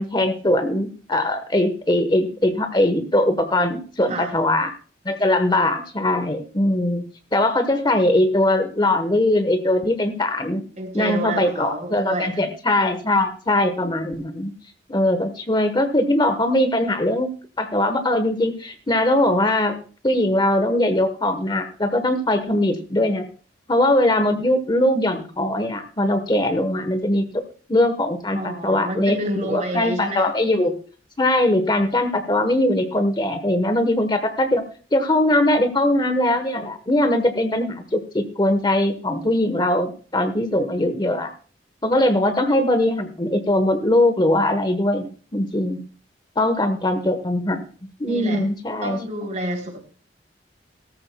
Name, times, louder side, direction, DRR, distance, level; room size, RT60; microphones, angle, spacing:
voice 1, 0.0-4.7 5.0-7.0 7.3-10.6 10.9-14.5 14.9-17.3 17.6-19.8 20.0-23.3 23.7-27.4 27.7-30.8 31.2-34.6 34.9-41.3 41.8-45.8 46.4-47.6 48.0-49.0, left 1 dB, 25° left, 9 dB, 1.1 m, -21 dB
voice 2, 10.8-12.4 28.4-30.3 47.0-47.1 48.1-48.4 48.8-49.8, right 1 dB, 40° right, 4 dB, 3.5 m, -29 dB
17.5 x 14.0 x 2.2 m, 0.39 s
head